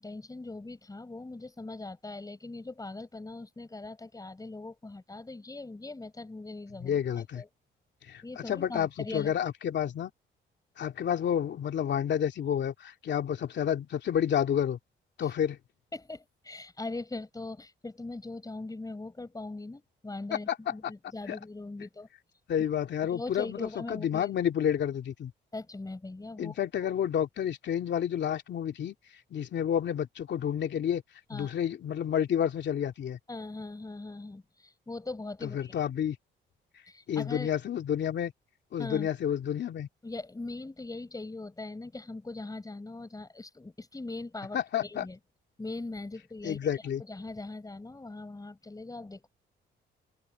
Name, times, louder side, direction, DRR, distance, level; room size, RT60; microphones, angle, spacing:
voice 1, 0.0-7.5 8.2-9.3 15.2-15.3 15.9-22.1 23.0-24.4 25.5-26.9 31.3-31.5 33.3-35.9 36.9-37.5 38.8-39.1 40.0-45.2 45.6-46.7 47.1-49.3, left 2 dB, 20° left, 5.9 m, -41 dB
voice 2, 6.8-7.4 8.1-10.1 10.8-14.8 15.2-15.6 20.3-20.7 21.3-21.4 22.5-25.3 26.4-28.9 29.3-31.0 31.3-33.2 35.4-36.2 37.1-38.3 38.7-39.9 44.5-45.0 46.4-47.0, left 9 dB, 65° left, 2.7 m, -30 dB
open air
cardioid pair, 90°, 20 cm